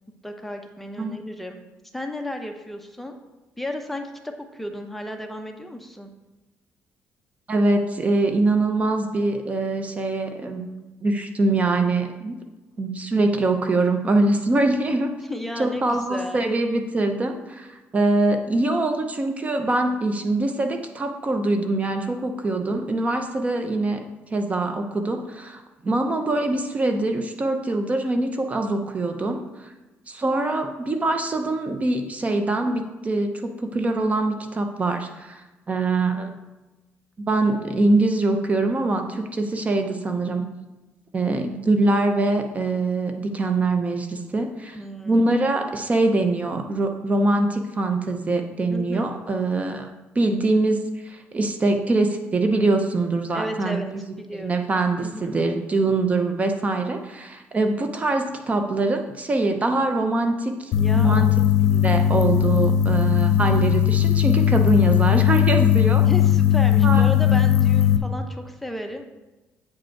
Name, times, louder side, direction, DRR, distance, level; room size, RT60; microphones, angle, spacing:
voice 1, 0.2-1.6 1.9-3.2 3.6-6.1 15.3-16.4 44.7-45.2 48.7-49.1 53.3-53.9 54.2-54.6 55.0-55.4 60.8-61.4 66.0-69.1, left 1 dB, 5° left, 3 dB, 0.8 m, -33 dB
voice 2, 7.5-10.6 11.0-12.4 12.8-15.1 15.6-24.0 24.3-29.7 30.1-36.3 37.3-40.4 41.1-44.8 45.0-53.8 54.4-61.3 61.7-66.1 66.8-67.1, right 2 dB, 30° right, 6 dB, 0.7 m, -23 dB
sound 1, 60.7-68.0, left 10 dB, 85° left, 0.6 m, -18 dB
8.4 x 5.2 x 4.5 m, 1.1 s
cardioid pair, 110°, 5 cm